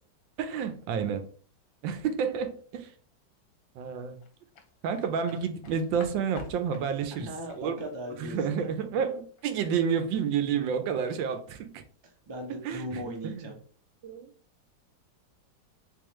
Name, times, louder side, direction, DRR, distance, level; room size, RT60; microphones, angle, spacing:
voice 1, 0.4-1.3 1.8-2.9 3.8-4.2 4.8-7.3 7.6-7.9 8.2-11.7 12.6-12.8 13.2-13.5 14.0-14.3, right 7 dB, 85° right, 9 dB, 1.3 m, -30 dB
sound 1, 4.2-9.4 9.8-10.0, left 4 dB, 60° left, 1.0 m, -48 dB
voice 2, 7.1-8.7 10.5-10.8 12.3-13.6, equal, 40° right, 1 dB, 0.3 m, -39 dB
3.8 x 3.0 x 3.0 m, 0.43 s
omnidirectional pair, 2.0 m